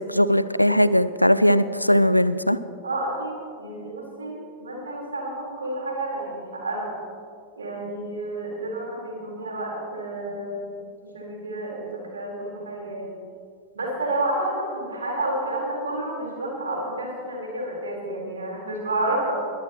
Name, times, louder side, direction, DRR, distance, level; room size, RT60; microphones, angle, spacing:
voice 1, 0.0-2.6, equal, 90° left, 15 dB, 0.4 m, -19 dB
voice 2, 2.8-7.0 7.6-13.2 13.7-19.3, right 1 dB, 75° right, -2 dB, 4.1 m, -30 dB
21.5 x 14.0 x 3.0 m, 2.3 s
figure-of-eight pair, 90°, 0 cm